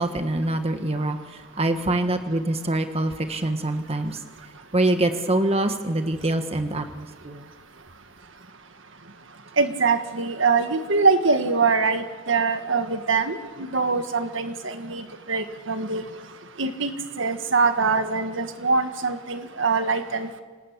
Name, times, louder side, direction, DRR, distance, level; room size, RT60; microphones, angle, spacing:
voice 1, 0.0-4.2 4.7-7.5, right 1 dB, 30° right, 7 dB, 1.3 m, -25 dB
voice 2, 9.6-16.0 16.6-16.9 17.2-20.4, right 4 dB, 70° right, 8 dB, 1.7 m, -23 dB
26.5 x 19.0 x 8.4 m, 1.4 s
head